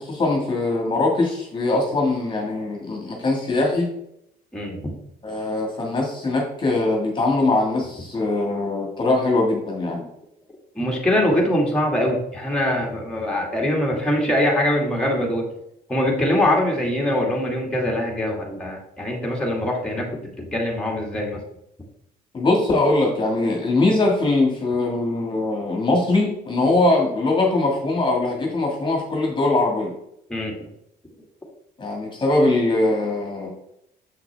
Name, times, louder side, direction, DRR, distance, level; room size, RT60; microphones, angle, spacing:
voice 1, 0.0-3.9 5.2-10.1 22.3-29.9 31.8-33.5, left 2 dB, 30° left, 0 dB, 1.7 m, -21 dB
voice 2, 4.5-4.9 10.8-15.4 15.9-20.1 20.4-21.4 30.3-30.7, left 1 dB, 5° left, -1 dB, 1.9 m, -23 dB
6.9 x 5.9 x 3.3 m, 0.76 s
cardioid pair, 110°, 17 cm